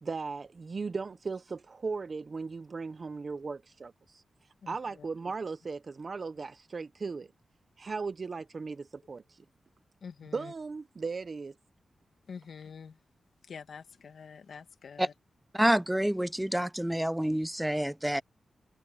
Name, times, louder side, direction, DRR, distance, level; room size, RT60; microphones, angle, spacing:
voice 1, 0.0-4.2 4.7-7.3 7.8-9.4 10.3-11.5, right 4 dB, 50° right, 0.8 m, -37 dB
voice 2, 4.6-5.1 10.0-10.5 12.3-13.0 13.4-15.1, left 6 dB, 75° left, 1.5 m, -46 dB
voice 3, 15.5-18.2, right 1 dB, 5° right, 0.5 m, -28 dB
cardioid pair, 85°, 0 cm